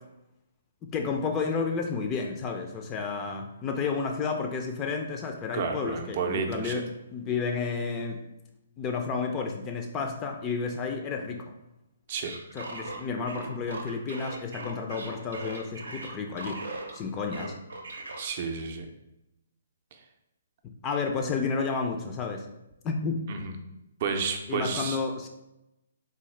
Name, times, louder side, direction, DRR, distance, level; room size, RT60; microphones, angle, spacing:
voice 1, 0.8-8.2 8.8-11.4 12.5-16.6 16.9-17.5 20.8-22.5 22.8-23.2 24.5-25.3, left 5 dB, 20° left, 3 dB, 0.3 m, -31 dB
voice 2, 5.5-6.8 12.1-12.3 18.2-18.9 23.3-23.5 24.0-25.0, right 5 dB, 45° right, 5 dB, 0.5 m, -31 dB
sound 1, 12.2-17.0 17.3-18.3, right 2 dB, 85° right, 0.6 m, -39 dB
3.6 x 2.3 x 3.2 m, 0.91 s
hypercardioid pair, 145°, 0 cm